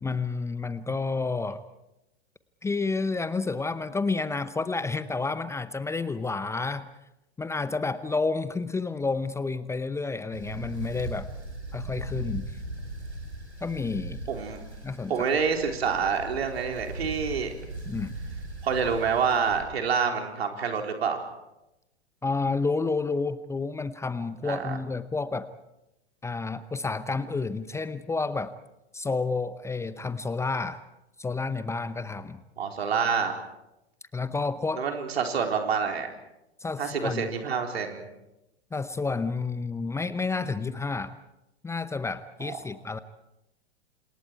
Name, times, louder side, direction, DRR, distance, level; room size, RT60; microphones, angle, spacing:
voice 1, 0.0-1.6 2.6-6.9 7.4-11.3 11.7-12.5 13.6-14.3 14.8-15.1 17.8-18.1 22.2-25.5 26.2-28.5 28.9-30.8 31.2-32.4 34.1-34.8 36.6-37.3 38.7-41.1 41.6-43.0, left 4 dB, 10° left, 14 dB, 0.8 m, -30 dB
sound 1, 10.3-19.6, right 1 dB, 85° right, 7.3 m, -39 dB
voice 2, 14.3-14.6 15.1-17.5 18.6-21.2 24.4-24.8 32.6-33.4 34.7-36.1 36.8-38.1 42.4-42.6, right 6 dB, 65° right, 4 dB, 4.1 m, -27 dB
29.5 x 27.0 x 4.7 m, 0.91 s
figure-of-eight pair, 100°, 33 cm